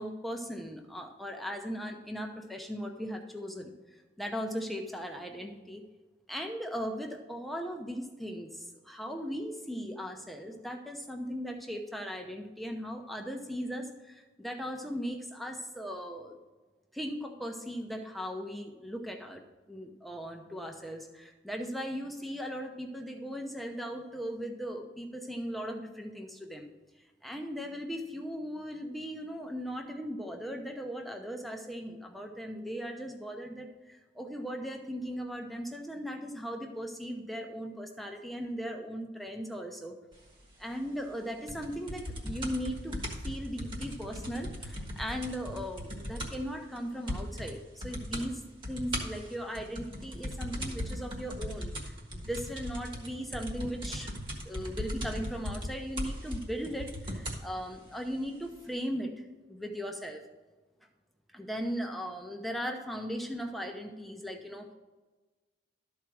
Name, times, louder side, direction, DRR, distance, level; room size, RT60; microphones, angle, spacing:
voice 1, 0.0-3.7 4.2-5.8 6.3-16.4 16.9-19.4 19.7-26.7 27.2-39.9 40.6-54.1 54.4-60.2 61.3-64.7, equal, ahead, 2 dB, 0.8 m, -38 dB
sound 1, 41.5-46.5 46.8-46.9 47.1-47.5 47.8-48.3 48.6-57.5 58.3-58.4, equal, 30° right, 1.4 m, -38 dB
12.5 x 4.7 x 6.2 m, 1.2 s
head